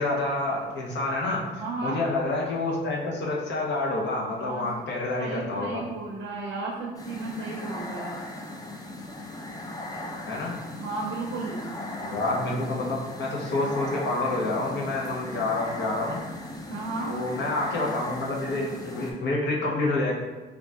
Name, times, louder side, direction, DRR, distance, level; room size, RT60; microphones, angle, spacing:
voice 1, 0.0-5.9 10.3-10.6 12.0-16.2 17.1-20.1, left 2 dB, 60° left, -2 dB, 0.8 m, -28 dB
voice 2, 1.6-2.0 4.4-4.7 5.2-8.2 10.8-11.7 16.7-17.1, right 3 dB, 70° right, -2 dB, 0.5 m, -33 dB
sound 1, 6.9-19.1, left 1 dB, 20° left, 0.5 m, -38 dB
3.6 x 2.3 x 2.4 m, 1.2 s
supercardioid pair, 70°, 20 cm